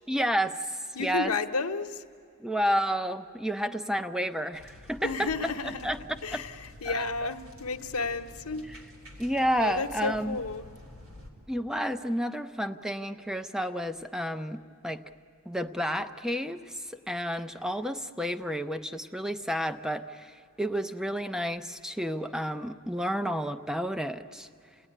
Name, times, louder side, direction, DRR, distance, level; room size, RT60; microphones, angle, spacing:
voice 1, 0.1-1.3 2.4-5.3 5.8-6.0 6.3-6.4 6.8-7.1 9.2-10.4 11.5-15.0 15.5-24.5, equal, 5° right, 0.6 m, -31 dB
voice 2, 0.9-2.0 5.0-5.9 6.2-8.7 9.6-10.6, left 4 dB, 80° left, 1.1 m, -32 dB
sound 1, 4.5-11.3, left 1 dB, 65° right, 3.6 m, -49 dB
29.5 x 18.0 x 10.0 m
head